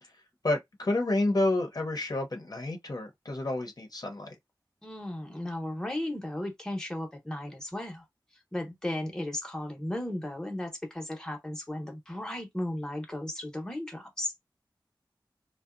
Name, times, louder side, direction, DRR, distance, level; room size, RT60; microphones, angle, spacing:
voice 1, 0.4-4.4, left 2 dB, 50° left, 0.7 m, -29 dB
voice 2, 4.8-8.1 8.5-14.5, left 1 dB, 10° left, 0.8 m, -35 dB
2.7 x 2.1 x 2.4 m
wide cardioid pair, 70°, 8 cm